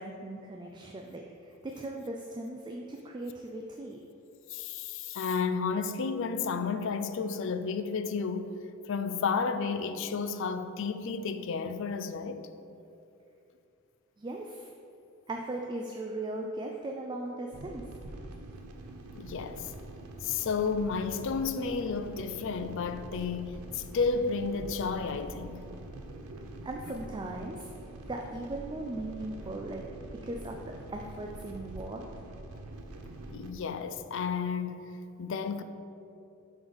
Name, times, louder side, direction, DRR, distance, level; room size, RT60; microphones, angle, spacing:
voice 1, 0.0-4.0 14.2-14.7 15.3-17.8 26.6-27.7 28.1-29.9 30.2-30.5 30.9-32.0, right 2 dB, 20° right, 0.3 m, -38 dB
voice 2, 4.5-8.5 8.9-12.5 19.1-19.7 20.2-25.6 33.3-34.8 35.2-35.6, left 5 dB, 60° left, 0.4 m, -32 dB
sound 1, 17.5-33.5, right 2 dB, 90° right, 0.6 m, -45 dB
7.0 x 3.9 x 5.1 m
head